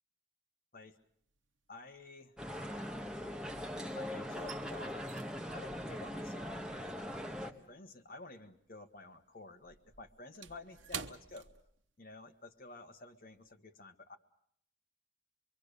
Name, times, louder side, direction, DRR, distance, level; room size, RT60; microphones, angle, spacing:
sound 1, 0.9-1.4 1.7-3.7 4.0-8.7 8.9-12.3 12.6-12.8 13.2-13.5, right 7 dB, 85° right, 1.0 m, -50 dB
voice 1, 1.7-2.3 3.2-3.4 3.8-5.1 5.5-7.1 7.4-11.5 12.0-14.2, left 2 dB, 50° left, 6 dB, 1.6 m, -51 dB
sound 2, 2.4-7.5, equal, 5° right, 1.4 m, -41 dB
25.0 x 23.5 x 6.8 m, 0.66 s
head